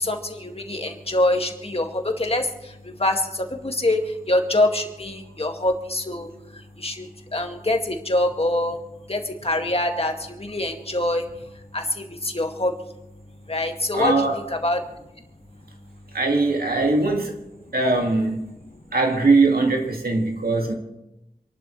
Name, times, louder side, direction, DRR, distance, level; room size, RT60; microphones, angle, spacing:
voice 1, 0.0-1.9 2.2-2.5 3.0-4.0 4.3-6.3 6.8-7.1 7.3-8.8 9.1-10.1 10.4-11.2 11.7-12.7 13.5-14.1 14.6-14.8, left 1 dB, 40° left, 2.1 m, -24 dB
voice 2, 13.9-14.4 16.1-17.3 17.7-18.5 18.9-20.7, right 3 dB, 80° right, 2.2 m, -21 dB
27.0 x 12.0 x 3.3 m
wide cardioid pair, 50°, 15 cm